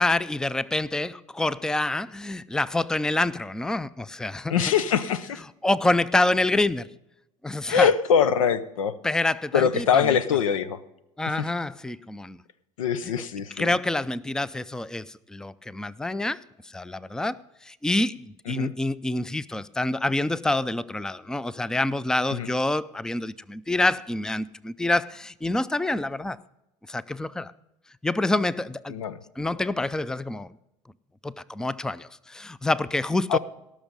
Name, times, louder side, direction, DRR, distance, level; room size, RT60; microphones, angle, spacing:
voice 1, 0.0-4.5 5.6-6.9 7.4-7.9 9.0-10.2 11.2-12.4 13.6-16.4 16.7-17.4 17.7-18.2 18.5-26.4 26.9-27.5 28.0-29.0 29.4-30.5 31.2-33.4, left 2 dB, 5° left, 0.4 m, -27 dB
voice 2, 4.5-5.4 7.7-8.9 9.5-10.8 11.3-11.5 12.8-13.7 18.5-18.7 22.3-22.5 28.9-29.2 33.3-33.4, left 7 dB, 90° left, 0.6 m, -23 dB
18.5 x 6.3 x 5.4 m
hypercardioid pair, 75°, 17 cm